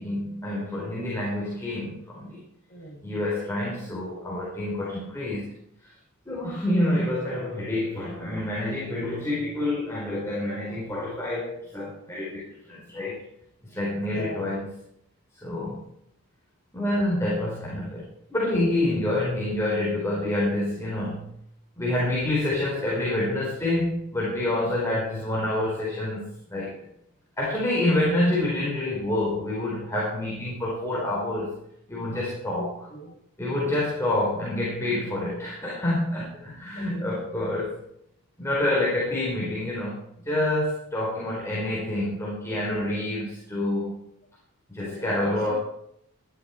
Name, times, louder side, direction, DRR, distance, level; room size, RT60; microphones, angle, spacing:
voice 1, 0.0-2.4 3.0-5.6 6.3-13.2 13.6-14.8 15.4-15.8 16.7-18.0 18.3-21.3 21.8-26.9 27.4-31.5 31.9-32.9 33.4-37.8 38.4-44.0 44.7-45.5, left 1 dB, 10° left, -6 dB, 4.5 m, -27 dB
voice 2, 2.7-3.1 14.1-14.5 24.6-24.7 32.5-33.1 36.8-37.0 42.7-43.0 44.8-45.5, equal, 35° left, -2 dB, 5.9 m, -39 dB
20.0 x 12.5 x 4.5 m, 0.75 s
head